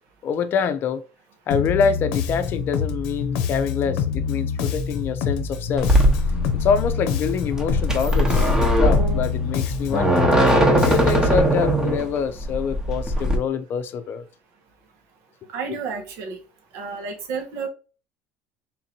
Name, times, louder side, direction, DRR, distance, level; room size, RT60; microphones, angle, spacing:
voice 1, 0.2-1.0 1.5-5.9 6.6-10.2 10.8-14.2 15.7-15.8, left 6 dB, 50° left, 0.6 m, -25 dB
Bass guitar, 1.5-11.4, left 6 dB, 80° left, 0.8 m, -26 dB
sound 1, 5.8-13.4, right 1 dB, 15° right, 1.0 m, -20 dB
voice 2, 15.5-16.4 16.7-17.7, right 5 dB, 70° right, 1.2 m, -31 dB
3.7 x 2.6 x 4.3 m
supercardioid pair, 110°, 5 cm